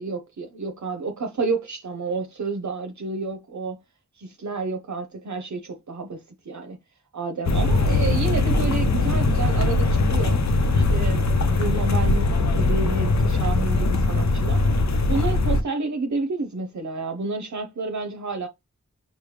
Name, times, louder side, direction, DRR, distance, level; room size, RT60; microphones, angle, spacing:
voice 1, 0.0-3.8 4.2-6.8 7.1-10.4 10.7-18.5, right 3 dB, 75° right, 0.8 m, -30 dB
sound 1, 7.4-15.6, left 2 dB, 65° left, 0.6 m, -21 dB
4.7 x 2.1 x 3.2 m
wide cardioid pair, 80°, 29 cm